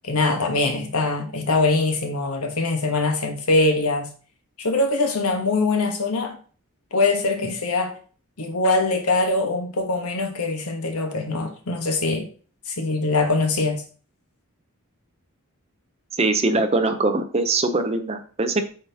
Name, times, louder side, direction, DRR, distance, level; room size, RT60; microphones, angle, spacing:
voice 1, 0.0-4.1 4.6-6.4 6.9-7.9 8.4-12.3 12.7-13.8, left 3 dB, 80° left, 1.2 m, -23 dB
voice 2, 16.1-18.7, right 2 dB, 30° right, 0.6 m, -22 dB
8.5 x 4.1 x 2.8 m
head